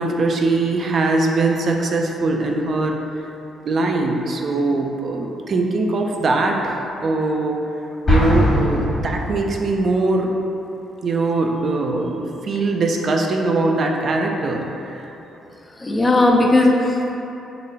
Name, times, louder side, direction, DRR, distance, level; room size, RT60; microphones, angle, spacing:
voice 1, 0.0-3.0 3.6-7.6 8.1-10.3 11.0-15.0, right 2 dB, 50° right, 1 dB, 0.3 m, -21 dB
Explosion, 8.1-9.7, left 1 dB, 40° left, 1.2 m, -20 dB
voice 2, 15.8-17.2, left 2 dB, 20° left, 0 dB, 0.4 m, -16 dB
3.9 x 2.1 x 3.3 m, 3.0 s
cardioid pair, 90°, 0 cm